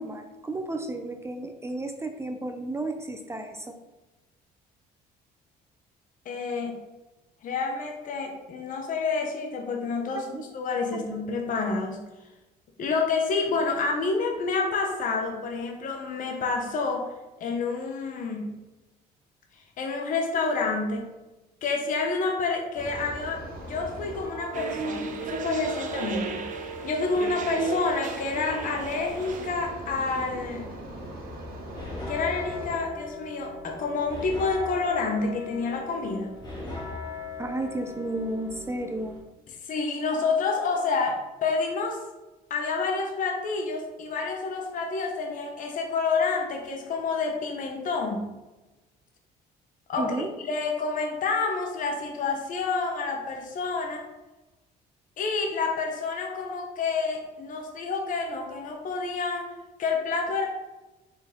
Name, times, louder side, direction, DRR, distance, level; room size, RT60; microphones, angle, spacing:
voice 1, 0.0-3.7 10.1-10.4 10.9-11.1 37.4-39.1 50.0-50.3, right 2 dB, 15° right, 5 dB, 0.5 m, -33 dB
voice 2, 6.2-6.8 7.4-12.0 12.8-17.1 17.4-18.5 19.8-21.0 21.6-26.5 26.8-30.7 32.1-36.3 39.5-42.0 42.5-48.3 49.9-54.1 55.2-59.5 59.8-60.5, left 4 dB, 50° left, 2 dB, 1.0 m, -28 dB
sound 1, 22.7-32.7, right 2 dB, 65° right, 1.7 m, -40 dB
sound 2, 24.5-29.6, right 4 dB, 50° right, 0.8 m, -35 dB
sound 3, 31.6-39.2, left 3 dB, 25° left, 2.1 m, -39 dB
5.7 x 4.6 x 3.7 m, 1.1 s
cardioid pair, 110°, 17 cm